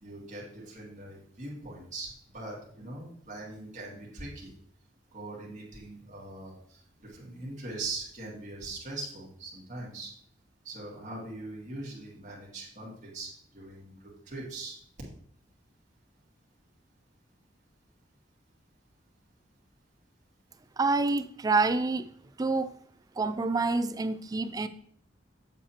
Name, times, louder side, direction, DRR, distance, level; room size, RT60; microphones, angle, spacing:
voice 1, 0.0-4.5 5.1-10.1 10.6-13.9 14.3-14.8, right 2 dB, 40° right, -5 dB, 2.1 m, -41 dB
voice 2, 20.8-22.1 22.4-22.7 23.2-24.7, right 3 dB, 20° right, 12 dB, 0.3 m, -27 dB
7.4 x 7.3 x 2.9 m, 0.62 s
head